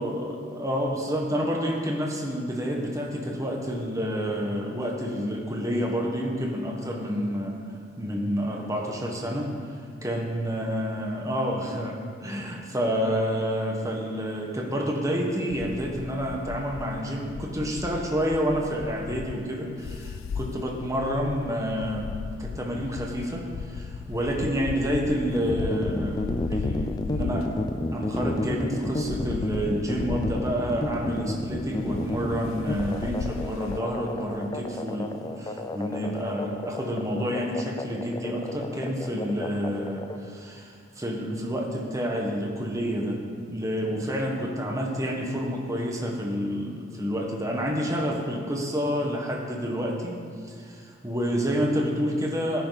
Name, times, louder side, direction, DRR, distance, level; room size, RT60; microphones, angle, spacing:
voice 1, 0.0-7.6 8.0-9.6 10.0-27.5 27.9-52.6, equal, 15° right, 0 dB, 1.5 m, -29 dB
sound 1, 15.5-33.8, left 6 dB, 80° left, 0.3 m, -37 dB
sound 2, 25.4-40.2, left 1 dB, 20° left, 0.5 m, -31 dB
16.5 x 10.0 x 4.1 m, 2.3 s
head